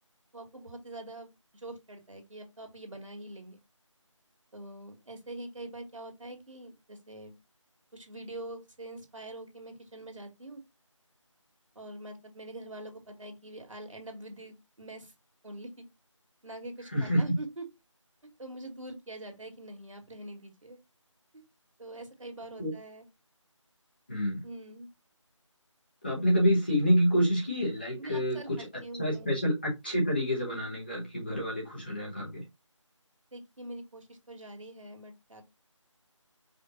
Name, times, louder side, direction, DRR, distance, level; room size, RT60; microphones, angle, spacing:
voice 1, 0.3-3.6 4.5-7.3 7.9-10.6 11.8-15.1 15.4-15.7 16.4-17.6 18.4-20.8 21.3-21.4 21.8-23.0 24.4-24.9 28.0-29.4 33.3-35.4, right 1 dB, 75° right, 1.8 m, -44 dB
voice 2, 16.9-17.4 22.6-22.7 24.1-24.4 26.0-28.7 29.0-32.4, equal, 20° left, 1.0 m, -27 dB
5.1 x 2.6 x 3.8 m
figure-of-eight pair, 175°, 17 cm